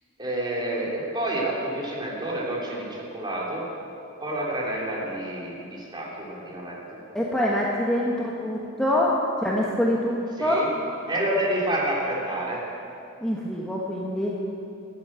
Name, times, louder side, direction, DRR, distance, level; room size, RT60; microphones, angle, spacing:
voice 1, 0.2-3.6 4.2-7.0 10.4-10.7 11.1-12.6, right 1 dB, 20° right, -4 dB, 3.3 m, -29 dB
voice 2, 7.1-10.6 13.2-14.4, left 1 dB, 5° left, -5 dB, 1.2 m, -25 dB
14.0 x 8.7 x 8.7 m, 2.7 s
head